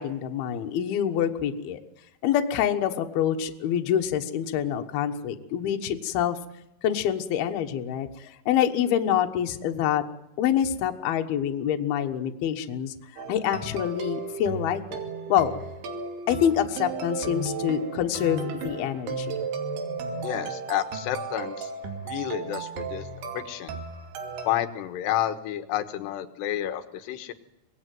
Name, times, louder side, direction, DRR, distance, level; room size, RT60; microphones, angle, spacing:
voice 1, 0.0-1.8 2.2-6.4 6.8-10.0 10.4-15.0 15.3-15.5 16.3-19.3, left 10 dB, 70° left, 5 dB, 3.1 m, -26 dB
sound 1, 13.2-24.5, right 4 dB, 70° right, 4.4 m, -34 dB
voice 2, 20.2-21.7 22.1-23.1 23.3-23.8 24.5-27.3, left 12 dB, 90° left, 10 dB, 3.5 m, -30 dB
24.5 x 19.0 x 9.4 m, 0.85 s
omnidirectional pair, 4.8 m